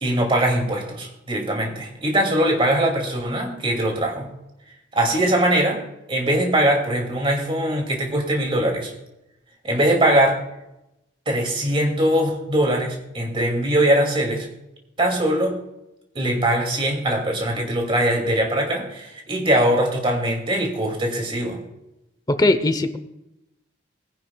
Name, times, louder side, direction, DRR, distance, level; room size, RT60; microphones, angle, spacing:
voice 1, 0.0-4.3 4.9-5.8 6.1-8.9 9.6-10.4 11.3-14.5 15.0-15.6 16.1-21.6, right 1 dB, 30° right, 1 dB, 2.4 m, -21 dB
voice 2, 22.3-23.0, left 2 dB, 20° left, 10 dB, 0.8 m, -19 dB
20.5 x 10.0 x 2.3 m, 0.89 s
head